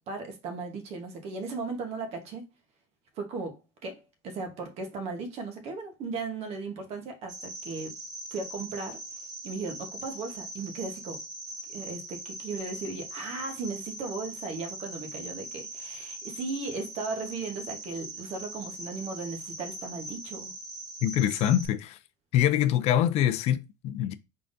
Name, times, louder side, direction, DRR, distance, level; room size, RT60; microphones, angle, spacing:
voice 1, 0.1-2.4 3.2-7.9 8.3-9.0 9.4-11.2 11.7-20.5, right 3 dB, 55° right, 1.1 m, -36 dB
Cricket, 7.3-21.7, right 2 dB, 30° right, 1.5 m, -41 dB
voice 2, 21.0-22.0 22.3-24.1, left 11 dB, 55° left, 0.4 m, -24 dB
3.8 x 3.4 x 2.6 m
supercardioid pair, 105°, 13 cm